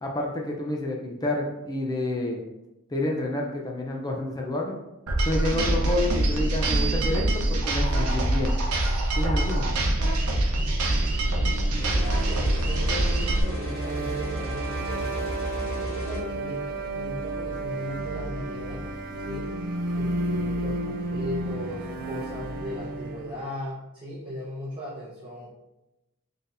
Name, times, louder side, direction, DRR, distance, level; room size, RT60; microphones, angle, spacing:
voice 1, 0.0-2.4 2.9-4.8 5.2-8.5 9.2-9.7, left 1 dB, 20° left, 0 dB, 0.4 m, -29 dB
sound 1, 5.1-13.4, right 1 dB, 75° right, 0.7 m, -24 dB
sound 2, 10.5-23.5, right 1 dB, 40° right, 0.4 m, -33 dB
sound 3, 11.8-16.2, right 1 dB, 65° left, 1.4 m, -33 dB
voice 2, 11.9-15.3 15.8-18.8 19.2-19.5 19.9-25.5, equal, 20° right, -9 dB, 0.9 m, -37 dB
4.2 x 3.3 x 2.6 m, 0.93 s
head